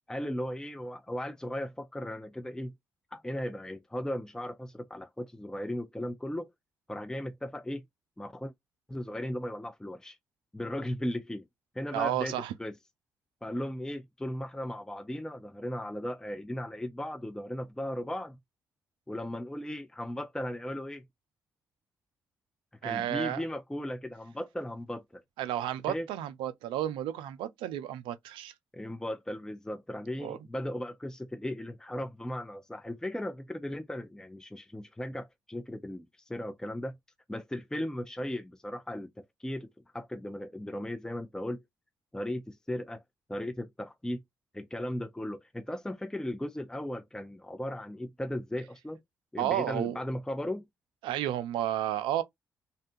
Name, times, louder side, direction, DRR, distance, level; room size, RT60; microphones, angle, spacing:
voice 1, 0.1-2.7 3.1-6.5 6.9-7.8 8.2-8.5 8.9-10.2 10.5-11.5 11.7-12.3 12.6-12.7 13.4-18.4 19.1-21.1 22.8-25.2 25.9-26.1 28.7-37.0 37.3-41.6 42.1-43.0 43.3-44.2 44.5-49.0 49.3-50.7, left 1 dB, 5° left, 0.5 m, -36 dB
voice 2, 11.9-12.5 22.8-23.4 25.4-28.5 30.2-30.4 49.4-50.0 51.0-52.2, right 12 dB, 80° right, 0.4 m, -32 dB
2.7 x 2.2 x 2.5 m
hypercardioid pair, 45°, 8 cm